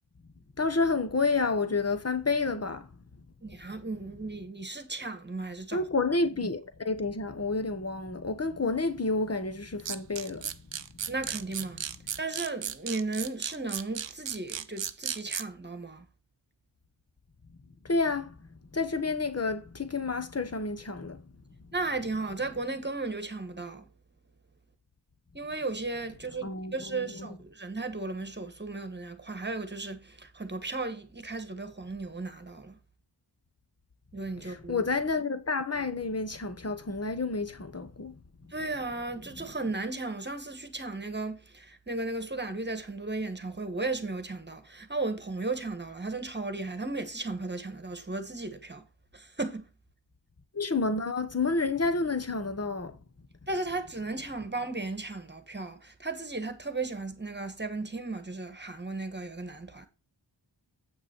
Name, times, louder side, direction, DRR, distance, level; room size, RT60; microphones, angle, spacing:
voice 1, 0.6-2.8 5.7-10.4 17.8-18.3 18.7-21.2 26.4-27.3 34.4-38.1 50.5-52.9, left 3 dB, 35° left, 1.3 m, -29 dB
voice 2, 3.4-5.8 11.1-11.8 12.2-16.0 21.7-23.8 25.3-32.8 34.1-34.8 38.5-48.8 49.1-49.7 53.5-59.9, right 3 dB, 25° right, 1.6 m, -35 dB
sound 1, 9.8-15.4, right 8 dB, 75° right, 0.8 m, -35 dB
8.4 x 6.0 x 4.5 m
wide cardioid pair, 60°, 44 cm